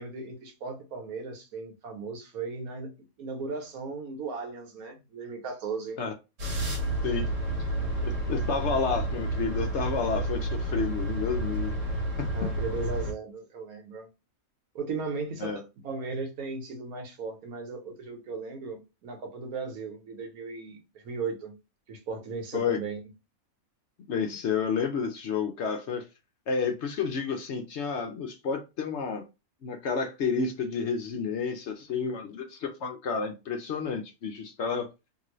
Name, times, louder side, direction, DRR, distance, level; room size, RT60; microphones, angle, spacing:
voice 1, 0.0-2.9 3.2-6.0 11.6-11.8 12.3-14.1 14.7-21.5 21.9-23.0 24.3-24.4, right 4 dB, 90° right, 1.4 m, -37 dB
sound 1, 6.4-13.1, right 1 dB, 60° right, 1.4 m, -30 dB
voice 2, 8.0-11.8 12.2-12.3 15.4-15.6 22.5-22.8 24.1-26.0 26.5-29.2 29.6-34.9, left 5 dB, 60° left, 0.8 m, -30 dB
2.9 x 2.6 x 3.0 m
omnidirectional pair, 1.5 m